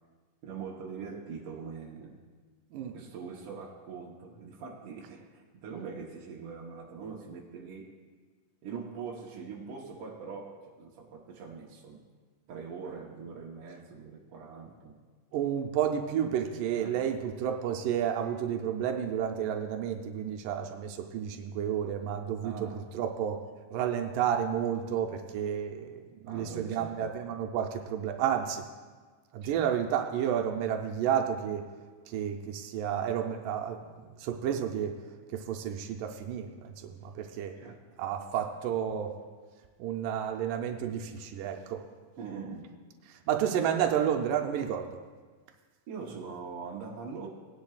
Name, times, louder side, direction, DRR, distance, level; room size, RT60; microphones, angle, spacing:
voice 1, 0.4-2.2 2.9-8.0 8.6-12.0 12.5-15.0 16.8-17.1 22.4-22.8 26.2-27.2 29.4-29.8 37.6-37.8 42.2-42.7 45.9-47.3, right 5 dB, 65° right, -2 dB, 1.4 m, -42 dB
voice 2, 15.3-22.7 22.9-23.4 23.7-28.6 29.3-31.7 32.1-33.9 34.2-34.9 35.3-37.6 38.0-39.2 39.8-41.8 43.1-45.0, right 9 dB, 90° right, 4 dB, 2.2 m, -31 dB
18.0 x 10.5 x 2.3 m, 1.4 s
omnidirectional pair, 3.8 m